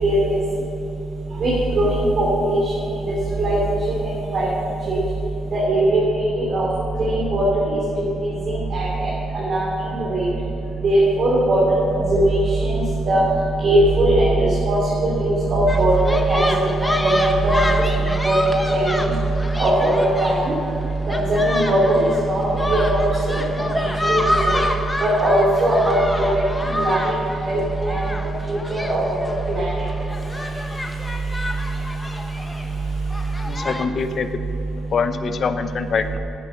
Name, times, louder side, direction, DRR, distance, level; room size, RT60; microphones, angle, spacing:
voice 1, 0.0-0.4 1.4-1.5 1.8-1.9 2.2-2.6 3.4-3.6 4.3-4.5 4.9-5.0 5.5-6.0 6.4-6.7 7.0-7.4 8.7-9.1 9.3-9.7 10.1-10.3 10.8-11.6 11.9-12.7 13.1-13.2 13.6-14.3 14.7-16.5 17.0-17.8 18.2-18.3 18.7-19.0 19.6-20.4 21.3-23.4 23.7-24.2 24.5-24.6 25.2-26.3 26.8-27.1 27.4-27.6 27.9-28.0 28.5-29.0 29.5-29.7, right 1 dB, 55° right, -6 dB, 3.2 m, -19 dB
sound 1, 15.7-33.9, left 1 dB, 15° left, 1.1 m, -29 dB
voice 2, 33.4-34.4 34.8-36.2, left 5 dB, 55° left, 9 dB, 0.8 m, -24 dB
10.5 x 9.5 x 6.5 m, 3.0 s
cardioid pair, 90°, 0 cm